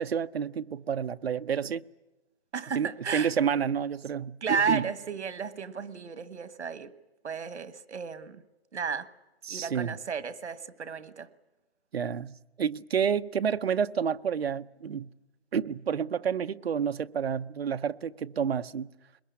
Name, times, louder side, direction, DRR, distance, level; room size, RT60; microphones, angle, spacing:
voice 1, 0.0-1.8 2.7-4.9 9.4-10.0 11.9-15.1 15.5-18.9, right 7 dB, 65° right, 0.8 m, -29 dB
voice 2, 2.5-3.3 4.4-6.9 7.2-8.4 8.7-9.1 9.5-11.3, right 5 dB, 80° right, 1.6 m, -33 dB
22.5 x 20.5 x 9.7 m
hypercardioid pair, 175°, 33 cm